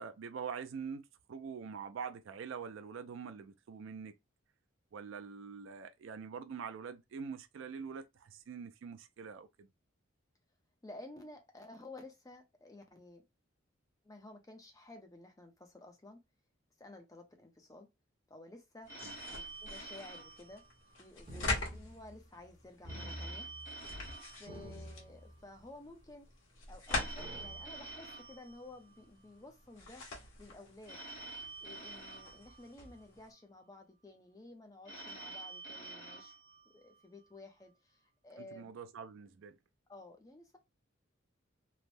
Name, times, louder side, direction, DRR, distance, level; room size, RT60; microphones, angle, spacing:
voice 1, 0.0-4.1 4.9-9.7 19.0-19.2 38.4-39.6, right 6 dB, 65° right, 0.4 m, -44 dB
voice 2, 10.8-13.2 14.0-16.2 16.8-17.9 18.3-18.9 19.3-20.6 21.0-23.5 24.2-26.3 26.7-30.1 30.4-31.0 31.6-36.3 36.7-38.7 39.9-40.6, left 2 dB, 15° left, 0.6 m, -53 dB
sound 1, 18.8-33.3, left 2 dB, 75° left, 1.3 m, -44 dB
Telephone, 18.9-21.4 22.9-25.4 26.9-29.4 30.9-33.3 34.9-37.3, right 2 dB, 40° left, 1.0 m, -49 dB
sound 2, 21.3-22.5 22.8-24.1 24.4-25.7 26.3-26.4 27.2-28.0, equal, 25° right, 0.9 m, -48 dB
3.3 x 2.0 x 2.6 m
head